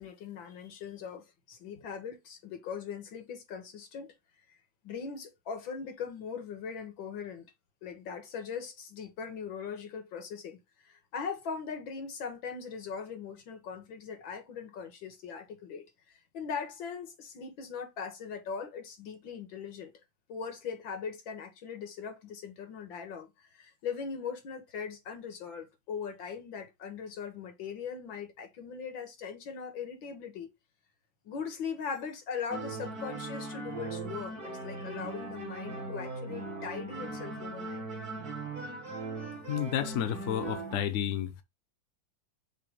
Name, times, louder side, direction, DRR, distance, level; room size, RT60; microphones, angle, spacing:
voice 1, 0.0-4.1 4.8-7.5 7.8-10.6 10.9-19.9 20.3-30.5 31.3-37.8, left 6 dB, 90° left, 2.1 m, -40 dB
sound 1, 32.5-40.8, right 2 dB, 55° right, 2.2 m, -39 dB
voice 2, 39.5-41.3, left 9 dB, 55° left, 1.0 m, -31 dB
6.7 x 2.8 x 5.0 m
omnidirectional pair, 2.0 m